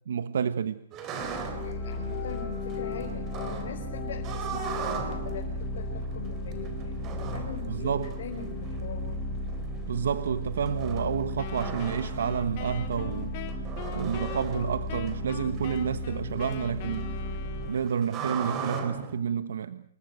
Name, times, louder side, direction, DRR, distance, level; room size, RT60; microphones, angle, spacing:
voice 1, 0.1-0.8 7.7-8.1 9.9-13.3 13.9-17.1 17.7-19.8, right 7 dB, 70° right, 1.2 m, -29 dB
sound 1, 0.9-19.2, right 6 dB, 20° right, 3.5 m, -40 dB
sound 2, 1.2-17.7, left 1 dB, 5° left, 6.4 m, -35 dB
voice 2, 1.6-9.1, left 6 dB, 50° left, 5.6 m, -42 dB
Wind instrument woodwind instrument, 11.4-18.2, left 9 dB, 30° left, 3.3 m, -43 dB
28.5 x 21.5 x 6.4 m
hypercardioid pair, 175°, 0 cm